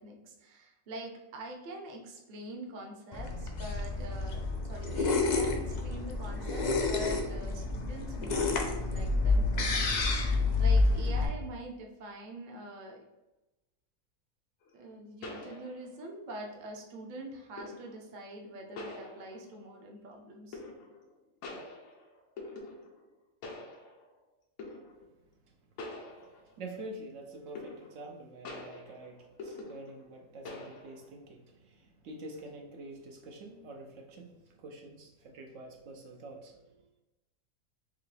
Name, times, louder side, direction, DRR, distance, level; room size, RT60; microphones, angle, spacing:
voice 1, 0.0-13.0 14.7-20.6, right 1 dB, 45° right, 1 dB, 0.7 m, -45 dB
sound 1, 3.1-11.3, left 3 dB, 70° left, 0.4 m, -29 dB
sound 2, 14.6-14.7 15.2-16.1 17.6-18.0 18.8-19.7 20.5-21.1 21.4-23.1 23.4-24.2 24.6-25.0 25.8-26.7 27.6-28.1 28.5-30.1 30.5-31.1, left 2 dB, 85° left, 1.2 m, -45 dB
voice 2, 26.3-36.8, right 2 dB, 70° right, 2 dB, 0.9 m, -47 dB
5.6 x 2.2 x 3.2 m, 1.0 s
omnidirectional pair, 1.5 m